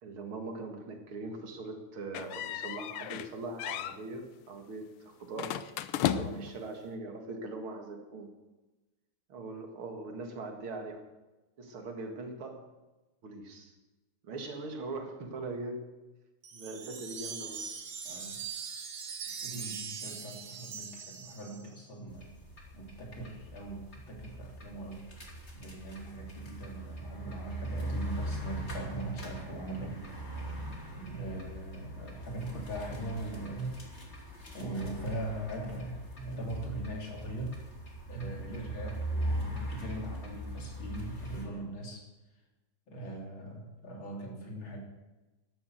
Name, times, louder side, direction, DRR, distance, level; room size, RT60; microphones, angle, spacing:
voice 1, 0.0-5.6 6.0-8.3 9.3-11.0 11.6-12.6 13.2-13.7 14.2-15.8 16.5-17.7, right 2 dB, 85° right, 4 dB, 2.9 m, -41 dB
sound 1, 2.1-3.3 3.6-4.0 5.4-6.6, left 11 dB, 90° left, 1.6 m, -34 dB
voice 2, 6.1-6.4 18.0-18.4 19.4-22.3 22.7-25.0 25.5-30.4 31.0-34.0 34.5-37.6 38.1-42.1 42.9-44.8, right 1 dB, 70° left, 0 dB, 4.0 m, -40 dB
Wind chime, 16.4-21.8, right 6 dB, 65° right, 2.1 m, -41 dB
sound 2, 22.1-41.4, right 1 dB, 30° left, 3.1 m, -40 dB
12.5 x 12.0 x 8.0 m, 1.1 s
omnidirectional pair, 2.3 m